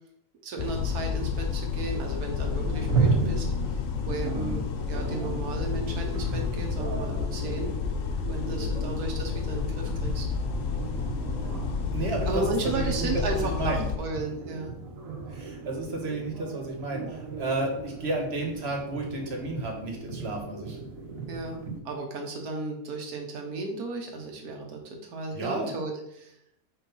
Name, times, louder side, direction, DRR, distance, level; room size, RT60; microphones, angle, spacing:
voice 1, 0.4-7.7 8.3-10.3 12.3-14.7 21.3-26.4, right 3 dB, 85° right, 2 dB, 1.6 m, -34 dB
sound 1, 0.6-14.0, left 6 dB, 65° left, 1.0 m, -30 dB
sound 2, 2.4-21.8, right 4 dB, 65° right, 1.5 m, -35 dB
voice 2, 11.9-13.1 13.4-13.8 15.3-20.8 25.3-25.7, right 2 dB, 45° right, 1 dB, 1.6 m, -32 dB
5.0 x 4.5 x 5.5 m, 0.73 s
omnidirectional pair, 1.6 m